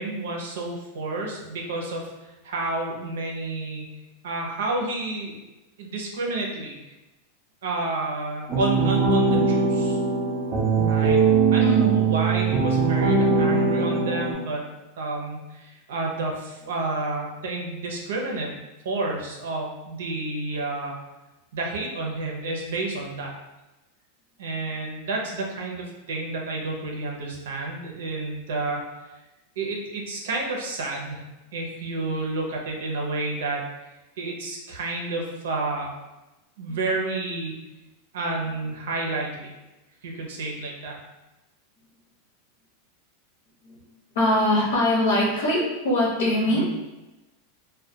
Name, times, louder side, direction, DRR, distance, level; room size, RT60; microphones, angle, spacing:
voice 1, 0.0-4.0 4.2-5.4 5.8-6.7 7.6-10.0 10.9-14.7 15.0-18.5 18.8-20.9 21.5-23.3 24.4-28.8 29.6-31.2 31.5-33.6 34.2-35.9 36.6-37.5 38.1-39.5 40.0-41.0 46.5-46.7, right 2 dB, 90° right, 0 dB, 0.6 m, -30 dB
sound 1, 8.5-14.3, right 4 dB, 20° right, 0.4 m, -21 dB
voice 2, 11.6-11.9 36.7-36.8 43.6-43.8 44.1-46.7, left 1 dB, 75° left, -4 dB, 0.8 m, -22 dB
2.2 x 2.2 x 2.7 m, 1.0 s
supercardioid pair, 180°, 0 cm